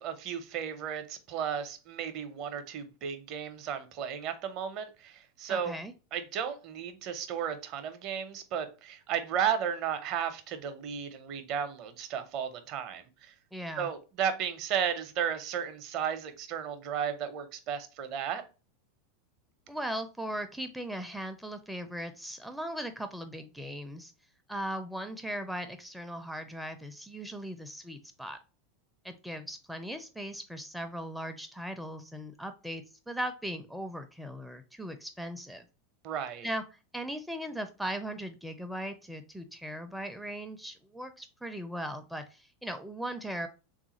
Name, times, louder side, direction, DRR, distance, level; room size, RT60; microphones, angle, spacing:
voice 1, 0.0-5.7 6.1-13.3 13.8-18.4 36.0-36.5, right 8 dB, 45° right, 0.6 m, -34 dB
voice 2, 5.5-5.9 13.5-13.9 19.7-24.1 24.5-28.4 29.0-35.6 36.4-36.6 36.9-43.5, equal, ahead, 0.4 m, -38 dB
3.6 x 2.4 x 2.9 m
figure-of-eight pair, 85°, 0 cm